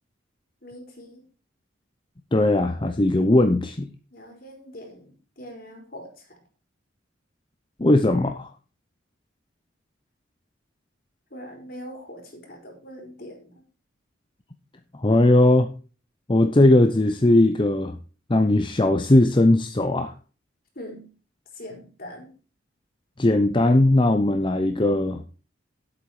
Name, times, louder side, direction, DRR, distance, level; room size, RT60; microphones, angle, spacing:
voice 1, 0.6-1.3 4.1-6.4 11.3-13.6 20.7-21.1 21.5-22.3, equal, 50° left, 4.3 m, -42 dB
voice 2, 2.3-3.9 7.8-8.5 14.9-15.7 16.3-18.0 18.3-20.1 23.2-25.2, left 1 dB, 25° left, 0.7 m, -19 dB
10.5 x 8.4 x 4.9 m
head